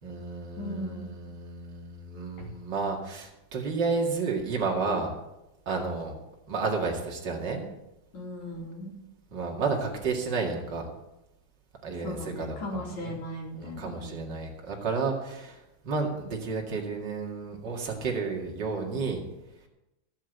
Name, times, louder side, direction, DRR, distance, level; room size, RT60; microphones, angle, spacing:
voice 1, 0.0-5.1 5.7-6.1 6.5-7.6 9.3-10.9 11.8-13.1 13.6-15.6 15.8-19.2, right 4 dB, 40° right, 0 dB, 1.8 m, -31 dB
voice 2, 0.6-1.1 2.4-2.5 8.1-9.0 12.0-14.4, left 1 dB, 50° left, -2 dB, 3.7 m, -38 dB
14.5 x 7.3 x 7.9 m, 0.93 s
omnidirectional pair, 4.7 m